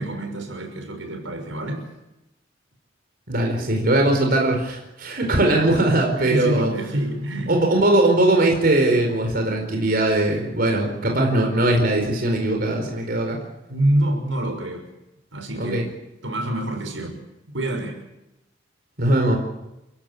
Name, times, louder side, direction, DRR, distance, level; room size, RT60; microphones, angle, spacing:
voice 1, 0.0-1.9 6.3-7.6 13.7-14.9 15.3-15.9 16.2-17.2 17.5-18.0, right 1 dB, 85° right, 5 dB, 6.0 m, -26 dB
voice 2, 3.3-6.7 7.5-13.4 15.6-15.8 19.0-19.4, right 1 dB, 50° right, 2 dB, 4.5 m, -20 dB
29.0 x 16.5 x 8.5 m, 0.94 s
head